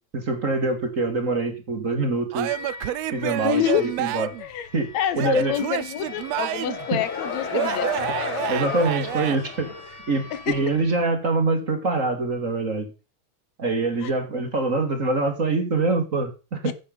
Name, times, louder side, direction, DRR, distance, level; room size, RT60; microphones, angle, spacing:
voice 1, 0.1-2.5 3.1-4.3 4.7-4.9 5.2-5.5 6.9-7.0 8.5-9.8 10.1-12.9 13.6-16.7, right 3 dB, 30° right, 2.0 m, -24 dB
Male speech man speaking / Yell / Laughter, 2.3-4.5 5.1-6.9 7.5-9.4, right 15 dB, 75° right, 1.6 m, -29 dB
sound 1, 2.4-11.0, left 2 dB, 90° left, 5.6 m, -42 dB
voice 2, 3.4-3.9 4.4-4.7 4.9-7.9 10.3-10.6 14.0-14.1 16.6-16.7, left 10 dB, 75° left, 2.2 m, -27 dB
sound 2, 6.0-10.5, left 5 dB, 45° left, 2.4 m, -32 dB
10.0 x 7.7 x 5.5 m
omnidirectional pair, 3.3 m